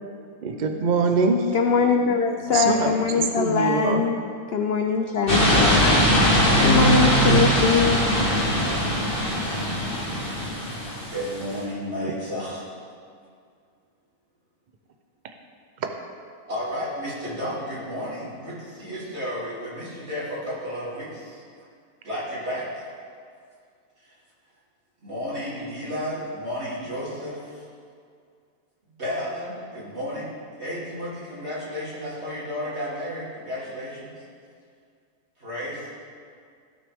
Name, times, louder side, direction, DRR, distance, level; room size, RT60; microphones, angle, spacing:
voice 1, 0.4-1.5 2.5-2.9 3.4-4.0 15.8-15.9, right 4 dB, 70° right, 5 dB, 0.4 m, -23 dB
voice 2, 1.5-4.2 4.5-5.9 6.6-8.0, left 6 dB, 70° left, 5 dB, 0.5 m, -22 dB
voice 3, 2.4-3.1 11.1-12.7 16.5-21.4 22.0-22.8 24.0-24.1 25.0-27.6 29.0-30.3 30.6-34.2 35.4-35.9, equal, 45° right, -9 dB, 3.2 m, -32 dB
sound 1, 5.3-11.6, equal, 35° left, 2.0 m, -20 dB
16.5 x 6.1 x 3.5 m, 2.3 s
omnidirectional pair, 1.6 m